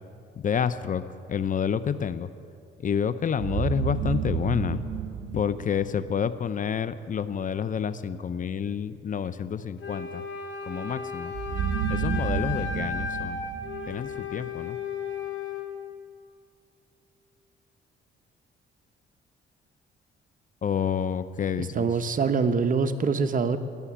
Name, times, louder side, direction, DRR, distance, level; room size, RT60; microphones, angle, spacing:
voice 1, 0.4-1.0 1.3-2.3 2.8-4.8 5.3-10.2 10.6-11.3 11.9-13.4 13.9-14.8 20.6-21.9, left 7 dB, 40° left, 14 dB, 0.6 m, -28 dB
sound 1, 3.4-6.4 11.3-14.6, right 8 dB, 85° right, 1.0 m, -31 dB
Wind instrument woodwind instrument, 9.8-15.7, left 6 dB, 75° left, 1.9 m, -35 dB
voice 2, 21.6-23.6, right 5 dB, 40° right, 9 dB, 0.9 m, -24 dB
16.0 x 7.0 x 9.9 m, 2.4 s
cardioid pair, 90°, 20 cm